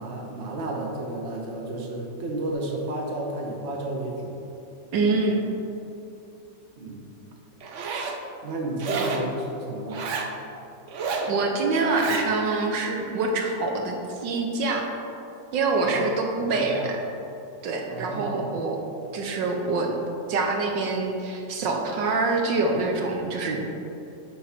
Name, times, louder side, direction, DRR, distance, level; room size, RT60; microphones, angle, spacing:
voice 1, 0.0-4.4 6.8-7.1 8.4-10.1 15.8-16.1 16.3-16.9 17.8-18.6, right 1 dB, 45° right, -1 dB, 1.2 m, -32 dB
voice 2, 4.9-5.4 11.3-14.9 15.5-16.7 17.6-18.8 19.1-19.9 20.3-23.7, right 3 dB, 75° right, 2 dB, 1.5 m, -25 dB
Zipper (clothing), 7.6-8.2 8.8-9.3 9.9-10.3 10.9-11.3 11.8-12.3, right 4 dB, 60° right, 0.8 m, -30 dB
8.9 x 4.6 x 5.9 m, 2.8 s
omnidirectional pair, 2.0 m